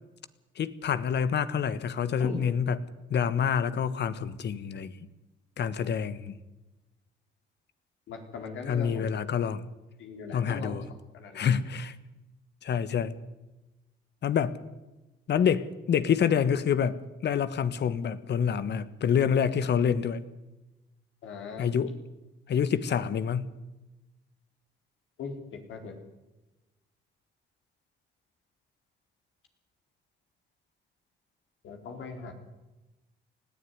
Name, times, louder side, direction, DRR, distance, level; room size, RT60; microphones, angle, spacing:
voice 1, 0.6-2.8 3.1-4.9 5.6-6.3 8.7-9.6 10.3-10.8 11.3-11.9 12.6-13.2 14.2-14.6 15.3-20.2 21.6-21.9 22.5-23.5, left 7 dB, 60° left, 15 dB, 1.4 m, -27 dB
voice 2, 8.1-9.1 10.0-10.8 11.1-11.5 21.2-21.7 25.2-26.0 31.6-32.3, left 5 dB, 80° left, 4 dB, 4.2 m, -39 dB
20.0 x 15.0 x 9.6 m, 1.1 s
cardioid pair, 90°, 20 cm